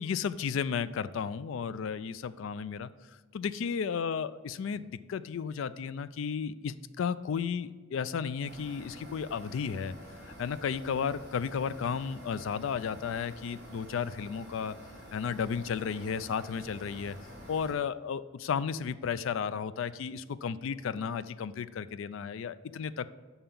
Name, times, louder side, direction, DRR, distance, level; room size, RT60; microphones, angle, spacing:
voice 1, 0.0-2.9 3.3-9.9 10.2-14.7 15.1-17.2 17.5-23.1, left 6 dB, 65° left, 15 dB, 0.3 m, -33 dB
sound 1, 8.4-17.7, equal, 50° right, 2.8 m, -49 dB
5.7 x 5.6 x 6.9 m, 1.4 s
head